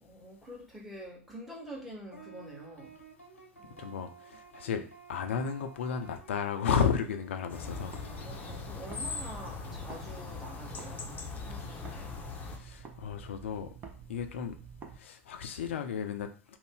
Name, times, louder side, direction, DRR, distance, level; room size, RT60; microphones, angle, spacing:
voice 1, 0.0-2.9 3.6-4.0 4.3-4.4 8.2-12.1, equal, ahead, -2 dB, 1.0 m, -47 dB
sound 1, 2.1-9.5, right 4 dB, 90° left, 0.7 m, -53 dB
voice 2, 3.8-4.8 5.1-8.0 12.6-13.7 14.1-14.6 15.0-16.3, left 7 dB, 65° left, 7 dB, 0.4 m, -33 dB
sound 2, 7.5-12.6, left 4 dB, 25° left, 0.6 m, -40 dB
sound 3, 7.6-10.1 10.3-15.0, right 6 dB, 25° right, 0.6 m, -49 dB
2.5 x 2.1 x 3.6 m, 0.38 s
figure-of-eight pair, 90°, 7 cm